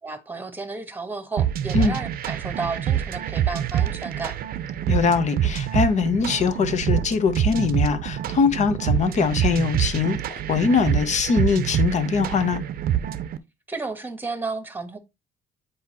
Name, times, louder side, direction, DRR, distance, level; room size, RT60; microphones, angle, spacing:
voice 1, 0.0-4.4 13.7-15.0, right 3 dB, 10° right, 1.2 m, -32 dB
sound 1, 1.4-13.4, right 10 dB, 60° right, 0.7 m, -26 dB
voice 2, 4.9-12.6, left 5 dB, 45° left, 1.0 m, -22 dB
7.9 x 4.8 x 3.0 m
cardioid pair, 110°, 17 cm